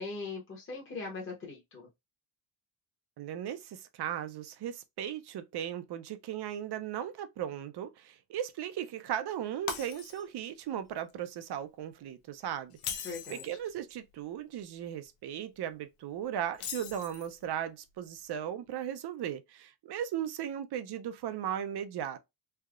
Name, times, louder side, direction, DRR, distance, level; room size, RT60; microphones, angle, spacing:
voice 1, 0.0-1.9 13.0-13.4, left 4 dB, 25° left, 1.0 m, -40 dB
voice 2, 3.2-22.2, right 10 dB, 50° right, 0.6 m, -37 dB
Shatter, 9.7-10.5 10.9-11.1 12.7-13.6 16.5-17.4, left 7 dB, 80° left, 0.9 m, -39 dB
3.4 x 2.7 x 2.3 m
cardioid pair, 150°, 50 cm